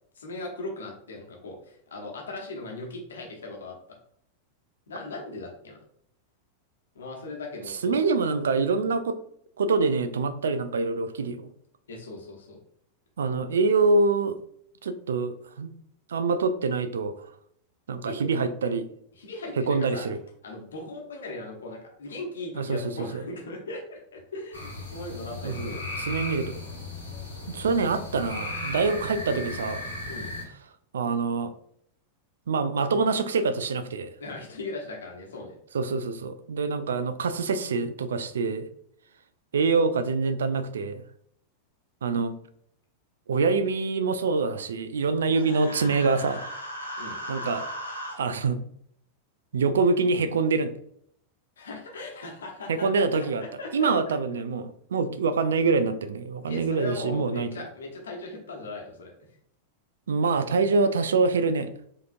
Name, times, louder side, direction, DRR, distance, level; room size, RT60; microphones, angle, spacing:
voice 1, 0.1-3.8 4.9-5.8 6.9-8.0 11.9-12.6 18.0-18.3 19.2-20.1 20.4-26.0 30.1-30.3 34.2-35.5 47.0-47.2 51.6-53.0 53.3-54.1 56.5-59.1, left 2 dB, 65° left, 1 dB, 1.0 m, -38 dB
voice 2, 7.7-9.2 9.6-11.5 13.2-14.4 14.8-15.7 16.1-17.3 17.9-18.9 19.6-20.2 22.5-23.2 25.4-26.6 27.5-29.9 30.9-31.5 32.5-34.1 35.7-38.7 39.5-41.0 42.0-42.3 43.3-46.5 47.3-47.6 48.2-48.6 49.5-50.7 52.7-53.4 53.7-57.6 60.1-61.7, right 4 dB, 65° right, 14 dB, 0.3 m, -25 dB
sound 1, 24.5-30.4, left 2 dB, 85° left, 1.2 m, -36 dB
Human voice, 45.3-48.1, equal, 85° right, 0.8 m, -37 dB
4.8 x 2.9 x 2.5 m, 0.69 s
figure-of-eight pair, 90°, 0 cm